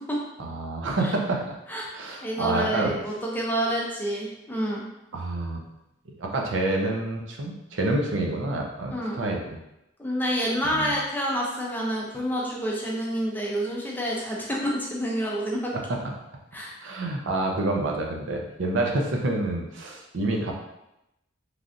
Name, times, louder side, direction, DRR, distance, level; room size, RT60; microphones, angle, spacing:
voice 1, 0.4-1.6 1.9-2.9 5.1-5.6 6.2-9.4 10.6-10.9 15.7-16.0 16.8-20.5, right 2 dB, 85° right, 1 dB, 0.5 m, -28 dB
voice 2, 2.2-4.8 8.9-9.2 10.0-15.7 16.5-16.7, equal, 10° left, -3 dB, 0.5 m, -28 dB
3.2 x 2.4 x 2.5 m, 0.89 s
head